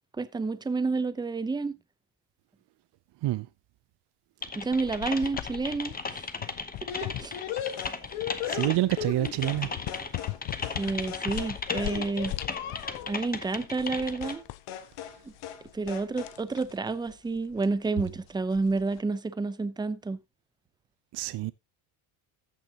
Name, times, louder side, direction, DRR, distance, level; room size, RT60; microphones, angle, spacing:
voice 1, 0.2-1.8 4.6-6.2 7.2-7.4 10.8-12.3 13.1-14.4 15.7-20.2, right 3 dB, 10° right, 0.5 m, -30 dB
Typing, 4.4-14.3, left 4 dB, 20° left, 0.9 m, -36 dB
sound 1, 4.6-19.0, left 16 dB, 60° left, 0.6 m, -41 dB
sound 2, 6.9-9.6 9.9-10.4 10.6-10.8 11.1-13.2 14.2-14.4 14.7-15.2 15.4-15.6 15.9-16.4, left 9 dB, 80° left, 1.5 m, -37 dB
voice 2, 8.5-9.7 21.1-21.5, right 16 dB, 55° right, 0.5 m, -27 dB
14.0 x 6.5 x 2.8 m
cardioid pair, 120°, 50 cm